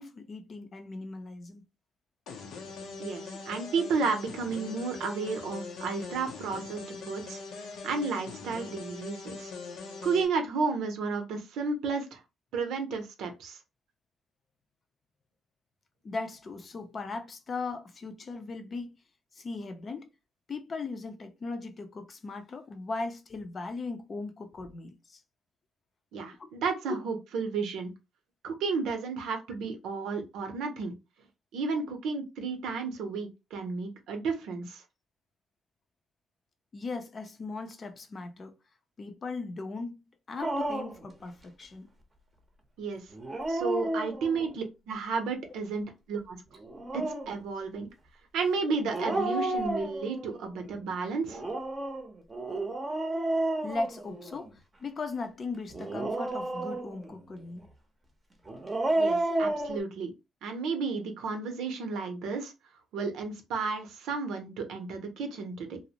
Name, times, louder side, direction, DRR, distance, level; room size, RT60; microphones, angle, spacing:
voice 1, 0.0-1.6 16.0-18.9 19.3-20.1 20.5-25.2 26.4-26.5 26.9-27.0 36.7-38.6 39.0-40.0 40.3-41.9 43.9-44.0 53.6-57.7, left 3 dB, 40° left, 0.5 m, -38 dB
sound 1, 2.3-10.3, left 4 dB, 80° left, 0.6 m, -42 dB
voice 2, 3.0-9.5 10.0-12.2 12.5-13.6 26.1-27.9 28.4-30.9 31.5-34.8 42.8-43.0 43.5-46.4 46.9-47.9 48.3-51.4 59.0-60.1 60.4-62.5 62.9-65.8, right 4 dB, 85° right, 0.7 m, -32 dB
Dog, 40.4-41.0 43.1-44.5 46.6-47.4 48.9-50.4 51.3-54.5 55.7-57.1 58.5-59.8, right 2 dB, 25° right, 0.7 m, -31 dB
2.5 x 2.0 x 2.8 m
cardioid pair, 90°, 0 cm